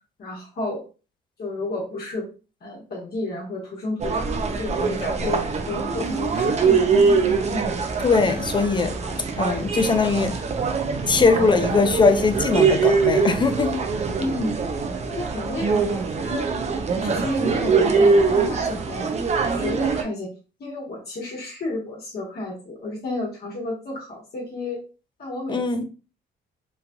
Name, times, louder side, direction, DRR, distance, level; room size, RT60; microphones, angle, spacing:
voice 1, 0.2-0.8 1.4-2.3 2.6-6.8 7.5-7.8 8.6-9.3 14.2-14.6 15.1-16.5 16.9-19.1 19.5-20.3 20.6-24.8 25.2-25.8, left 2 dB, 55° left, 1.1 m, -31 dB
sound 1, 4.0-20.0, right 4 dB, 35° right, 0.5 m, -23 dB
voice 2, 8.0-8.9 9.4-10.4 11.1-13.8 25.5-25.8, left 4 dB, 25° left, 0.4 m, -20 dB
3.1 x 2.4 x 2.2 m
cardioid pair, 90°, 20 cm